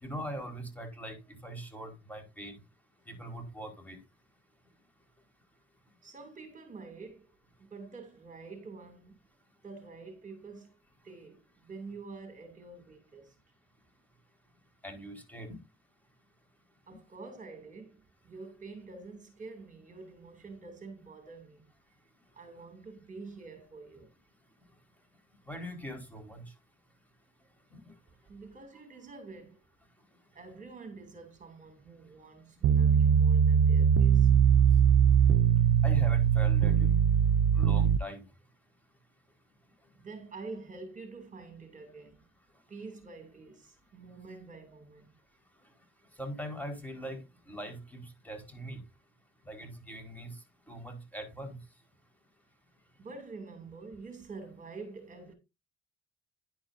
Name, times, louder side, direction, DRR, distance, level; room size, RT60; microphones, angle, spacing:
voice 1, 0.0-1.2 1.4-2.6 3.1-4.0 14.8-15.6 25.5-26.4 27.7-27.8 35.8-36.9 37.5-38.2 46.2-48.8 49.5-50.3 50.7-51.6, equal, 10° left, 4.8 m, -41 dB
voice 2, 6.0-7.3 7.6-9.2 9.6-10.8 11.0-13.4 16.9-21.6 22.3-24.1 28.3-29.7 30.3-34.3 39.9-42.2 42.7-45.1 53.0-55.3, right 4 dB, 40° right, 2.9 m, -47 dB
sound 1, 32.6-38.0, right 8 dB, 85° right, 0.5 m, -22 dB
10.5 x 10.0 x 2.7 m
cardioid pair, 90°, 20 cm